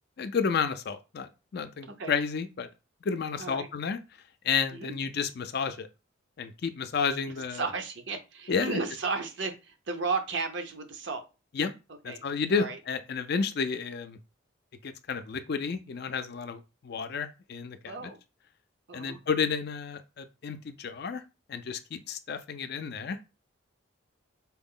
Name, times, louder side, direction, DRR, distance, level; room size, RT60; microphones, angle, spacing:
voice 1, 0.2-2.7 3.0-4.0 4.4-5.9 6.4-7.6 8.5-8.8 11.5-11.7 12.0-14.2 14.8-18.1 18.9-21.2 21.5-23.3, left 5 dB, 50° left, 0.4 m, -31 dB
voice 2, 7.5-11.2 12.1-12.2 12.5-12.8 17.9-18.2 18.9-19.2, right 4 dB, 65° right, 0.7 m, -34 dB
4.3 x 2.0 x 3.7 m
head